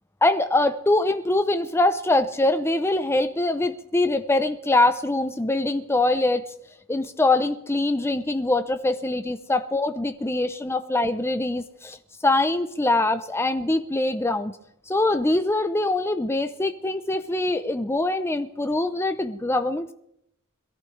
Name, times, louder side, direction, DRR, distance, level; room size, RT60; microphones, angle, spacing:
voice 1, 0.2-6.4 6.9-12.0 12.2-14.5 14.9-19.9, left 2 dB, 10° left, 9 dB, 0.6 m, -23 dB
22.0 x 14.0 x 3.3 m, 0.74 s
head